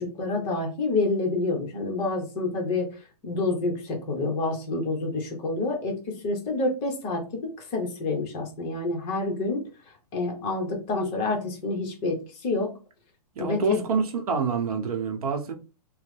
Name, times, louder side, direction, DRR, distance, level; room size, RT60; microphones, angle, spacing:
voice 1, 0.0-9.7 10.1-12.7 13.4-13.8, left 3 dB, 25° left, 0.8 m, -28 dB
voice 2, 13.4-15.5, right 4 dB, 65° right, 0.8 m, -27 dB
3.0 x 2.0 x 3.2 m
hypercardioid pair, 150°, 21 cm